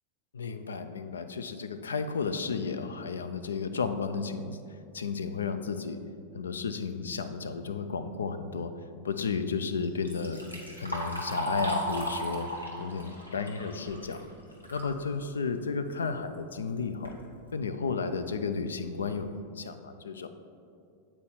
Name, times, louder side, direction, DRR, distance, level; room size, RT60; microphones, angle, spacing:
voice 1, 0.3-4.6 4.9-6.0 6.3-8.7 9.0-10.4 10.8-12.5 12.8-14.2 14.7-17.1 17.5-20.3, left 5 dB, 70° left, 10 dB, 0.4 m, -33 dB
Liquid, 9.8-14.9 15.3-15.4 16.3-16.4 16.8-17.2 17.8-17.9 18.4-18.5 18.9-19.2, right 1 dB, 90° left, 1.0 m, -36 dB
8.4 x 4.3 x 4.2 m, 2.4 s
figure-of-eight pair, 90°, 0 cm